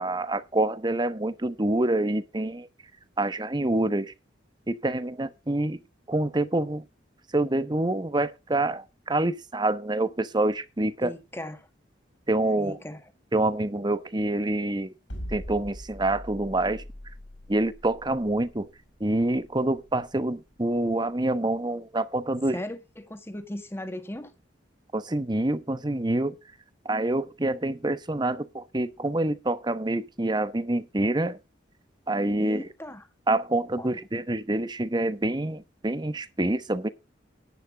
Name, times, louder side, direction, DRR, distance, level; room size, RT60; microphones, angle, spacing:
voice 1, 0.0-2.7 3.2-4.1 4.7-5.8 6.1-6.8 7.3-11.2 12.3-12.8 13.3-14.9 15.3-16.8 17.5-18.7 19.0-22.6 24.9-26.3 26.8-31.4 32.1-32.6 33.3-36.9, right 2 dB, 25° right, 1.0 m, -26 dB
voice 2, 11.0-11.7 12.6-13.1 22.5-24.3 32.4-33.1 33.8-33.9, left 1 dB, 15° left, 1.7 m, -37 dB
sound 1, 15.1-21.3, equal, 75° left, 6.2 m, -42 dB
10.5 x 9.3 x 5.0 m
head